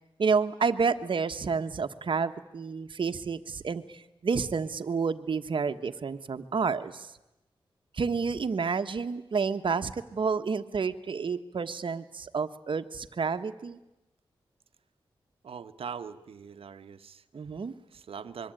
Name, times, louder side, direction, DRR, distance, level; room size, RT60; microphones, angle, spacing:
voice 1, 0.2-7.1 7.9-13.8 17.3-17.7, right 5 dB, 60° right, 9 dB, 1.4 m, -30 dB
voice 2, 15.4-17.2 17.9-18.5, right 7 dB, 80° right, 9 dB, 1.1 m, -41 dB
25.5 x 22.5 x 9.1 m, 0.95 s
wide cardioid pair, 80°, 9 cm